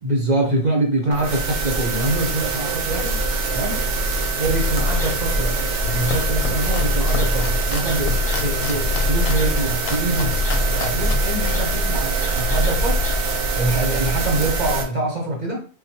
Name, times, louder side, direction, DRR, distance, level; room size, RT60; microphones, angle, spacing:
voice 1, 0.0-3.2 3.5-3.8 4.4-5.6 5.8-10.3 10.7-13.0 13.5-15.6, right 2 dB, 40° right, 0 dB, 0.7 m, -24 dB
sound 1, 1.1-14.8, right 4 dB, 80° right, 1.2 m, -24 dB
sound 2, 4.4-13.2, left 4 dB, 30° left, 0.8 m, -26 dB
Domestic sounds home sounds, 5.7-12.6, left 4 dB, 70° left, 0.9 m, -33 dB
4.0 x 2.2 x 2.8 m, 0.38 s
omnidirectional pair, 1.6 m